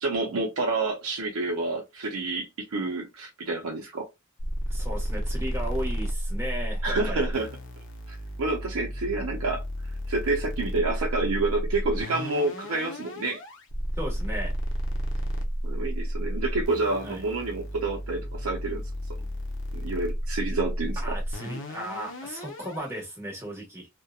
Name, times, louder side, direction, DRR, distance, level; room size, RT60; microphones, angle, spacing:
voice 1, 0.0-4.1 6.8-7.5 8.1-9.6 10.1-13.4 15.6-18.8 19.7-21.2, right 3 dB, 80° right, 0.5 m, -29 dB
sound 1, 4.4-23.0, equal, 60° left, 0.7 m, -32 dB
voice 2, 4.7-7.3 14.0-14.5 17.0-17.2 21.0-23.9, equal, 10° right, 1.0 m, -35 dB
2.7 x 2.1 x 2.2 m
head